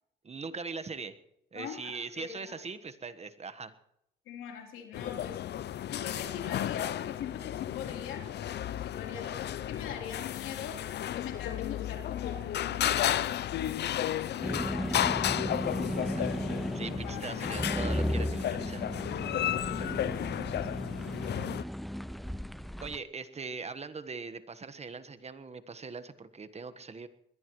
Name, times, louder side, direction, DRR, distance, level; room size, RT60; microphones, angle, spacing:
voice 1, 0.2-1.1 1.5-3.7 15.9-16.3 16.7-18.9 22.8-27.1, right 4 dB, 35° right, 11 dB, 1.4 m, -41 dB
voice 2, 1.5-2.6 4.3-5.4 5.9-10.9 11.1-16.3 16.7-18.0 19.4-20.9, left 8 dB, 90° left, 1 dB, 3.7 m, -43 dB
sound 1, 4.9-21.6, left 11 dB, 60° left, 0.5 m, -33 dB
sound 2, 14.4-23.0, equal, ahead, 0.5 m, -35 dB
21.5 x 18.5 x 3.2 m, 0.81 s
cardioid pair, 90°, 20 cm